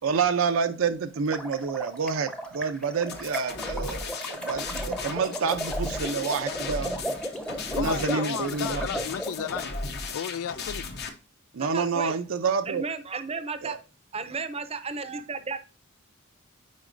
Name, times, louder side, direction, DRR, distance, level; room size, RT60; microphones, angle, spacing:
voice 1, 0.0-6.9 7.7-8.8 11.5-12.9 13.6-13.8, right 5 dB, 70° right, 0.5 m, -28 dB
sound 1, 1.2-9.7, equal, 5° left, 0.8 m, -35 dB
sound 2, 3.1-11.1, left 3 dB, 50° left, 0.9 m, -35 dB
voice 2, 7.8-9.7 10.1-10.9, left 8 dB, 85° left, 0.3 m, -33 dB
voice 3, 11.6-12.2 12.7-13.8 14.1-15.6, right 4 dB, 30° right, 0.6 m, -33 dB
9.5 x 4.0 x 2.5 m
head